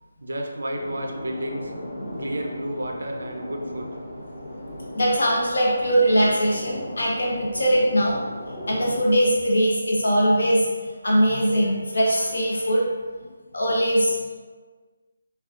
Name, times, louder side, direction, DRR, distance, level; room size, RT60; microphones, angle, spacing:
voice 1, 0.2-1.8 2.2-3.9 5.1-5.2 5.7-5.8 6.1-6.4 12.6-12.7, right 1 dB, 90° right, 2 dB, 0.6 m, -32 dB
sound 1, 0.7-9.0, left 1 dB, 15° left, 0.4 m, -37 dB
voice 2, 4.9-8.2 8.7-10.7 11.0-12.9 13.5-14.2, equal, 85° left, -3 dB, 0.9 m, -21 dB
3.3 x 2.3 x 2.5 m, 1.4 s
hypercardioid pair, 180°, 0 cm